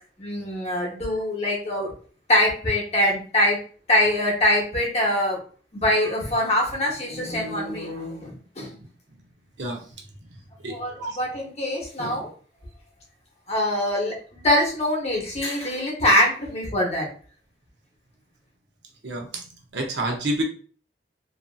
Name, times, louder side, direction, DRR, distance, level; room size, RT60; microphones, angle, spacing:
voice 1, 0.2-1.9 2.3-3.6 3.9-5.4 5.7-8.7 10.7-12.3 13.5-17.1, left 1 dB, 35° left, -2 dB, 0.8 m, -23 dB
voice 2, 10.6-11.2 19.0-20.4, right 1 dB, 90° right, 2 dB, 0.6 m, -29 dB
2.6 x 2.5 x 2.3 m, 0.43 s
head